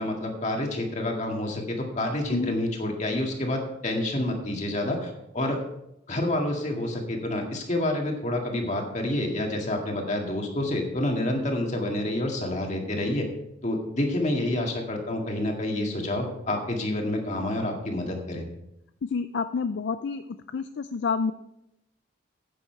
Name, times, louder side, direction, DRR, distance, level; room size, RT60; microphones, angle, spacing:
voice 1, 0.0-5.6 6.1-13.3 13.6-18.5, left 1 dB, 35° left, 1 dB, 1.9 m, -28 dB
voice 2, 19.1-20.2 20.5-21.3, left 5 dB, 55° left, 10 dB, 0.4 m, -28 dB
10.5 x 8.9 x 4.5 m, 0.83 s
head